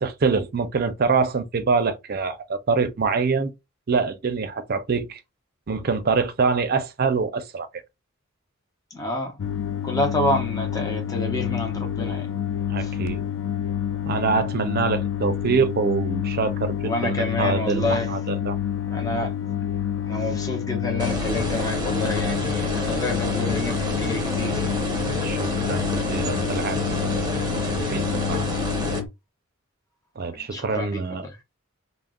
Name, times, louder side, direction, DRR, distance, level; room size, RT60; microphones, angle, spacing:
voice 1, 0.0-3.5 3.9-5.2 5.7-7.7 12.7-13.2 14.1-18.6 25.2-28.5 30.2-31.2, right 4 dB, 50° right, 0.5 m, -25 dB
voice 2, 8.9-9.4 9.8-12.4 12.8-12.9 16.8-18.1 18.9-19.3 20.1-24.7 25.0-25.7 30.3-31.4, left 1 dB, 20° left, 0.6 m, -29 dB
sound 1, 9.4-29.1, left 9 dB, 70° left, 0.4 m, -28 dB
sound 2, 21.0-29.0, equal, 20° right, 0.8 m, -29 dB
2.3 x 2.0 x 3.5 m
head